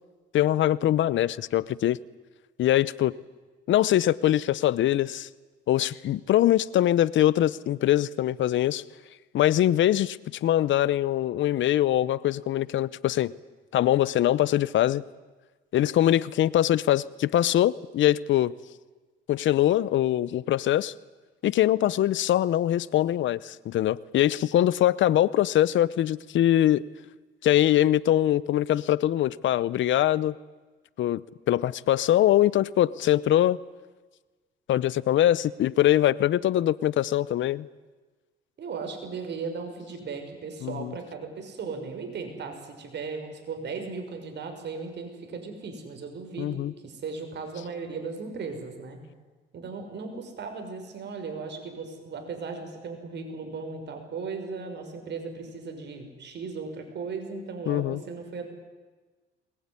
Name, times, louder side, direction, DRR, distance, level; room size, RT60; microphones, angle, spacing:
voice 1, 0.3-2.0 2.6-3.1 3.7-5.3 5.7-8.8 9.3-13.3 13.7-15.0 15.7-18.5 19.3-20.9 21.4-26.8 27.4-30.3 31.0-31.2 31.5-33.6 34.7-37.7 40.6-40.9 46.4-46.7 57.7-58.0, left 12 dB, 75° left, 20 dB, 0.8 m, -23 dB
voice 2, 38.6-49.0 49.5-58.5, right 4 dB, 60° right, 5 dB, 6.0 m, -37 dB
22.0 x 21.0 x 9.9 m, 1.3 s
cardioid pair, 90°, 20 cm